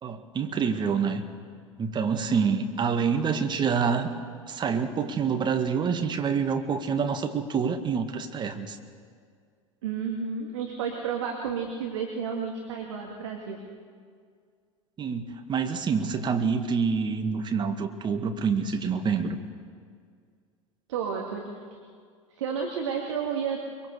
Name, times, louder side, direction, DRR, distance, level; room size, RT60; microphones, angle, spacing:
voice 1, 0.0-1.2 1.8-4.1 4.5-8.8 15.0-19.4, right 6 dB, 30° right, 6 dB, 1.9 m, -27 dB
voice 2, 9.8-13.6 20.9-21.6 22.3-23.9, right 6 dB, 65° right, 1 dB, 2.3 m, -31 dB
23.5 x 23.0 x 6.8 m, 2.1 s
figure-of-eight pair, 75°, 16 cm